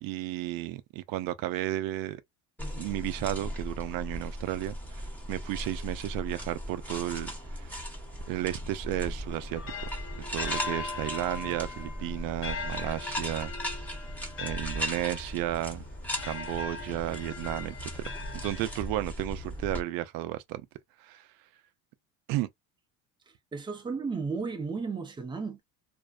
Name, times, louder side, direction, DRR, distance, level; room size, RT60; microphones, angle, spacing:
voice 1, 0.0-2.2 2.8-7.8 8.3-9.9 10.3-13.5 14.4-15.8 16.2-18.0 18.4-20.7 21.0-21.3 22.3-22.5, right 15 dB, 65° right, 0.5 m, -33 dB
sound 1, 2.6-19.8, equal, 5° left, 0.9 m, -38 dB
sound 2, 9.3-19.2, left 4 dB, 35° left, 0.8 m, -40 dB
voice 2, 23.5-25.6, right 4 dB, 15° right, 0.5 m, -34 dB
2.5 x 2.1 x 2.3 m
cardioid pair, 115°, 37 cm